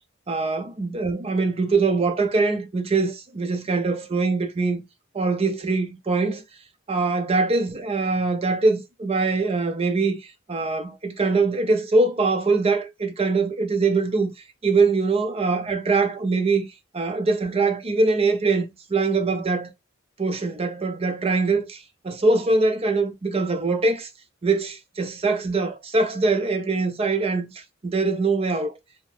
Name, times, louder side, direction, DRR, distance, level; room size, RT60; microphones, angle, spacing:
voice 1, 0.3-4.8 5.1-6.4 6.9-14.3 14.6-16.7 16.9-19.7 20.2-24.1 24.4-28.8, right 3 dB, 30° right, 0.5 m, -23 dB
2.8 x 2.2 x 3.1 m
head